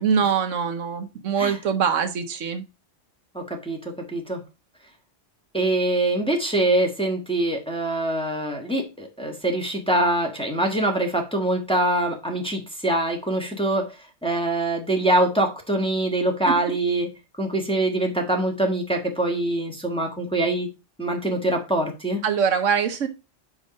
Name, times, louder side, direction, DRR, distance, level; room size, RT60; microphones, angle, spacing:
voice 1, 0.0-2.6 16.5-16.6 22.2-23.1, right 7 dB, 80° right, 8 dB, 1.2 m, -23 dB
voice 2, 3.3-4.4 5.5-13.9 14.2-17.1 17.4-20.7 21.0-22.2, right 1 dB, 5° left, 1 dB, 1.4 m, -24 dB
5.1 x 4.7 x 5.2 m, 0.27 s
omnidirectional pair, 1.3 m